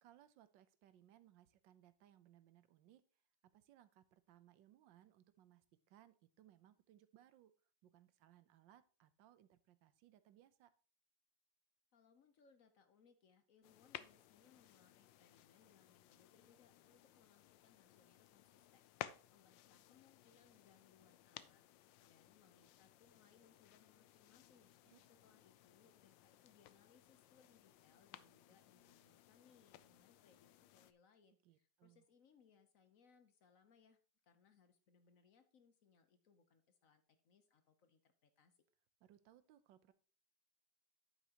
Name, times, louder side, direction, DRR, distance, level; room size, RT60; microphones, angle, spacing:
voice 1, 0.0-3.0 3.4-7.5 7.8-10.7 24.8-25.0 31.4-32.0 39.0-39.9, right 12 dB, 80° right, 13 dB, 1.4 m, -67 dB
voice 2, 11.9-24.7 25.1-38.6, left 6 dB, 55° left, 9 dB, 1.1 m, -71 dB
sound 1, 13.6-30.9, left 13 dB, 85° left, 1.3 m, -58 dB
10.0 x 8.3 x 2.9 m, 0.38 s
omnidirectional pair, 2.0 m